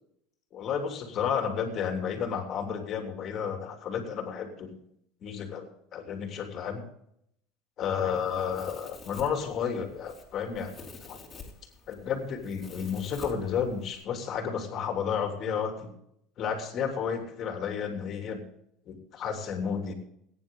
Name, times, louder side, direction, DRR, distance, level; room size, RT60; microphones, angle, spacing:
voice 1, 0.5-4.8 5.2-6.8 7.8-10.7 11.0-11.2 11.9-15.9 16.4-18.4 18.9-19.9, left 7 dB, 45° left, 4 dB, 3.2 m, -32 dB
Domestic sounds home sounds, 7.8-14.0, left 4 dB, 25° left, 4.2 m, -49 dB
21.5 x 10.0 x 3.8 m, 0.74 s
supercardioid pair, 100°, 0 cm